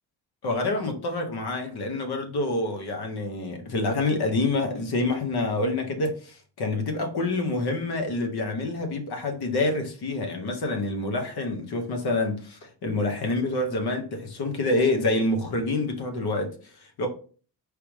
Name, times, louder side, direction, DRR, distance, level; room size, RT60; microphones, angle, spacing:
voice 1, 0.4-17.1, left 2 dB, 60° left, 1.0 m, -27 dB
4.7 x 3.4 x 3.2 m
wide cardioid pair, 145°, 44 cm